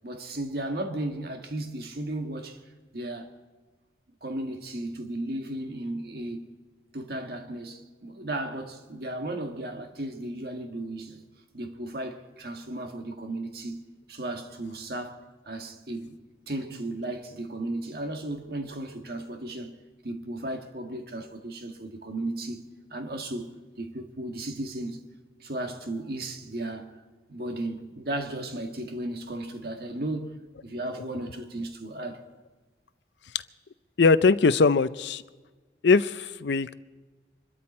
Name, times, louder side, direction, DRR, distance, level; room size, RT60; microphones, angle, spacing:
voice 1, 0.0-2.6 2.9-3.3 4.2-6.5 6.9-11.2 11.5-13.8 14.1-16.1 16.5-19.8 20.0-22.6 22.9-23.5 23.8-25.0 25.4-26.9 27.3-30.3 30.6-32.2, right 1 dB, 55° right, 1.7 m, -35 dB
voice 2, 34.0-35.2 35.8-36.7, left 4 dB, 70° left, 0.5 m, -21 dB
25.0 x 13.0 x 4.3 m
head